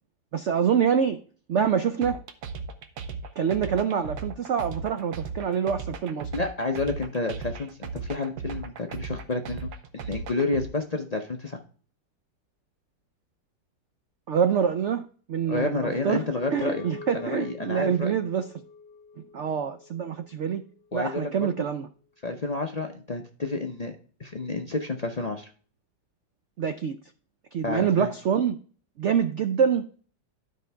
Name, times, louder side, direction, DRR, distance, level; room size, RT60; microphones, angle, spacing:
voice 1, 0.3-1.2 1.5-2.2 3.4-6.3 14.3-16.3 16.5-18.5 19.3-20.6 20.9-21.9 26.6-27.0 27.5-28.6 29.0-29.9, right 7 dB, 90° right, 9 dB, 0.6 m, -25 dB
sound 1, 2.0-10.7, right 5 dB, 65° right, 1.3 m, -36 dB
voice 2, 6.3-11.6 15.5-16.8 17.1-18.2 20.9-21.7 22.2-23.9 24.2-25.5 27.6-28.1, left 3 dB, 55° left, 3 dB, 0.4 m, -30 dB
sound 2, 16.6-21.1, left 5 dB, 75° left, 1.4 m, -45 dB
12.0 x 5.2 x 3.4 m, 0.42 s
omnidirectional pair, 1.9 m